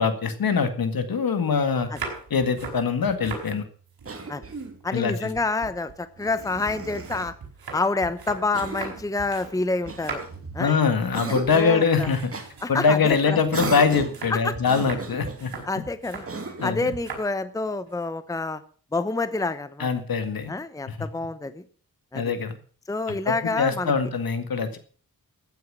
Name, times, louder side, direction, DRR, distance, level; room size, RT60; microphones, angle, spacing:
voice 1, 0.0-1.9 2.3-3.7 4.9-5.3 10.6-12.3 12.7-15.5 16.6-16.9 19.8-20.5 20.9-21.0 22.1-22.6 23.1-24.8, left 5 dB, 70° left, 9 dB, 2.0 m, -23 dB
sound 1, 1.8-3.5 3.9-5.1 5.4-9.6 9.8-10.5 10.9-11.2 11.4-11.6 12.0-16.3 16.9-17.3 17.7-18.0, right 4 dB, 80° right, 5.3 m, -39 dB
Cough, 4.0-4.8 6.2-7.3 8.5-9.1 9.9-10.7 11.1-11.8 12.3-12.5 13.5-14.2 14.6-15.4 16.3-16.8, right 3 dB, 40° right, 2.3 m, -35 dB
voice 2, 4.8-7.3 7.7-10.2 10.5-10.7 11.5-12.1 12.6-13.4 14.3-14.5 15.7-16.3 16.6-18.6 18.9-19.9 20.5-21.6 22.1-22.2 22.9-23.9, left 3 dB, 10° left, 13 dB, 0.8 m, -27 dB
15.0 x 9.4 x 6.3 m, 0.43 s
wide cardioid pair, 145°, 36 cm